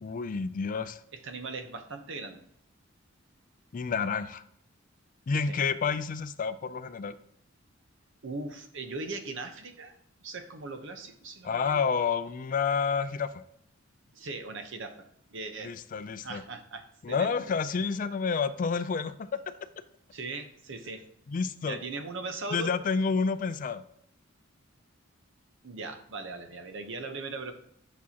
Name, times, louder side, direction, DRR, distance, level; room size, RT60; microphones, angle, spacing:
voice 1, 0.0-1.0 3.7-4.4 5.3-7.1 11.4-13.3 15.6-16.4 17.0-19.4 21.3-21.8 22.5-23.8, left 5 dB, 40° left, 13 dB, 0.3 m, -29 dB
voice 2, 1.1-2.4 5.5-5.6 8.2-10.0 10.2-11.8 14.1-15.7 16.2-17.3 20.1-21.0 21.6-22.7 25.6-27.5, right 3 dB, 65° right, 7 dB, 0.9 m, -39 dB
8.4 x 6.1 x 2.8 m, 0.69 s
head